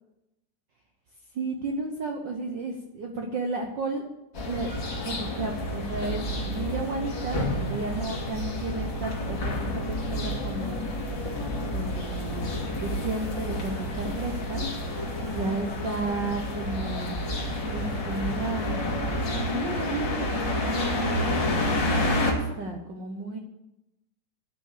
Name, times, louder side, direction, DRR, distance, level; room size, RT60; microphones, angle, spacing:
voice 1, 1.3-4.1 4.4-4.7 5.0-9.8 10.1-10.8 11.7-14.6 15.3-17.2 17.7-19.0 19.3-23.4, right 3 dB, 80° right, 2 dB, 1.0 m, -33 dB
sound 1, 4.3-22.3, left 1 dB, 40° left, 2.6 m, -29 dB
12.0 x 5.6 x 8.4 m, 0.91 s
omnidirectional pair, 3.5 m